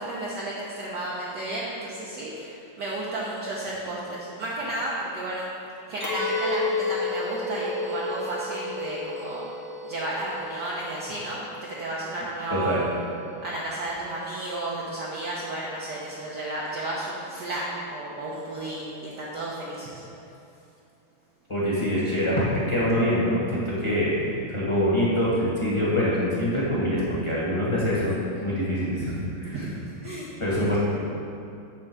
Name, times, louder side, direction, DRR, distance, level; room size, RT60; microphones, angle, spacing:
voice 1, 0.0-5.4 5.9-9.4 9.8-12.9 13.4-20.0 29.5-30.8, right 1 dB, 60° right, -6 dB, 1.3 m, -33 dB
Chink clink, 6.0-11.4, left 4 dB, 75° left, 1.9 m, -32 dB
sound 1, 6.1-13.6, equal, 40° right, 0.3 m, -39 dB
voice 2, 12.5-12.8 21.5-24.1 24.5-29.6 30.4-30.8, equal, 15° left, -8 dB, 1.1 m, -24 dB
7.8 x 3.7 x 5.9 m, 2.6 s
omnidirectional pair, 2.3 m